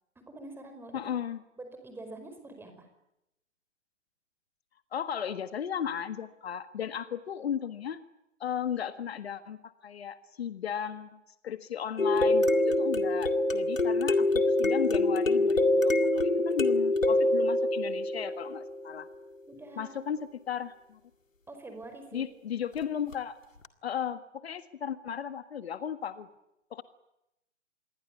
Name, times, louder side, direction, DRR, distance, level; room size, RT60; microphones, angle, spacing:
voice 1, 0.1-1.0 1.6-2.9 19.5-20.1 21.5-22.3, right 2 dB, 5° right, 6 dB, 5.1 m, -45 dB
voice 2, 0.9-1.4 4.9-8.0 8.4-19.1 19.8-21.0 22.1-23.4 23.8-26.3 26.7-26.8, left 8 dB, 55° left, 11 dB, 1.7 m, -35 dB
sound 1, 12.0-18.9 23.1-23.2 23.6-23.7, left 2 dB, 80° left, 2.2 m, -25 dB
27.0 x 22.5 x 9.7 m, 0.87 s
figure-of-eight pair, 125°, 38 cm